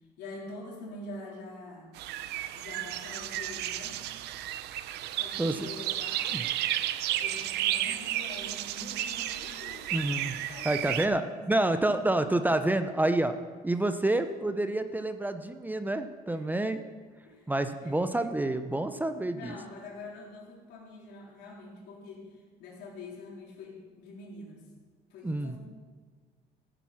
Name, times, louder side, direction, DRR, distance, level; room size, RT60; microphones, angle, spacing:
voice 1, 0.2-1.9 2.5-4.0 5.1-6.6 7.1-9.9 10.5-12.1 12.4-12.5 16.3-16.5 17.2-17.5 17.8-18.1 19.3-24.6 25.1-25.6, left 2 dB, 80° left, -3 dB, 3.9 m, -45 dB
sound 1, 2.0-11.1, right 13 dB, 80° right, 0.6 m, -33 dB
voice 2, 5.4-5.7 6.3-6.4 9.9-10.4 10.6-13.3 13.6-16.8 17.5-19.5 25.2-25.6, right 2 dB, 10° right, 9 dB, 0.7 m, -28 dB
14.0 x 9.0 x 5.8 m, 1.5 s
cardioid pair, 110°, 17 cm